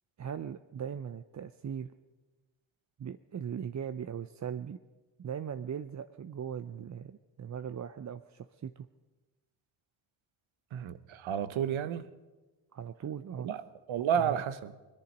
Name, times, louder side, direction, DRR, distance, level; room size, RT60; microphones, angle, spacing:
voice 1, 0.2-1.9 3.0-4.8 5.2-8.9 12.7-13.5 14.2-14.4, right 8 dB, 35° right, 0.6 m, -39 dB
voice 2, 10.7-12.1 13.4-13.6 13.9-14.7, right 8 dB, 70° right, 0.9 m, -31 dB
22.0 x 10.5 x 5.3 m
supercardioid pair, 50°, 49 cm